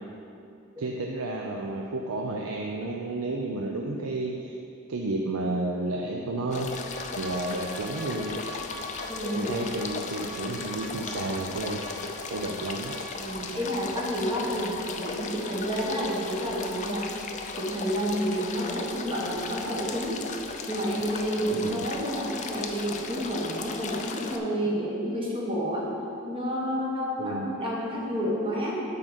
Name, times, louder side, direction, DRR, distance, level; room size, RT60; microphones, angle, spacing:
voice 1, 0.8-4.6 4.9-6.7 7.1-8.4 9.3-11.8 12.3-12.9 21.6-21.9 27.2-27.6, right 2 dB, 80° right, 1 dB, 0.5 m, -31 dB
sound 1, 6.5-24.4, left 4 dB, 35° left, 0.4 m, -37 dB
sound 2, 6.7-14.6, left 1 dB, 40° right, 1.9 m, -44 dB
voice 2, 9.1-9.5 13.2-17.1 17.5-20.2 20.7-25.9 26.3-28.8, equal, 25° right, -4 dB, 1.1 m, -30 dB
7.7 x 3.8 x 6.4 m, 2.6 s
head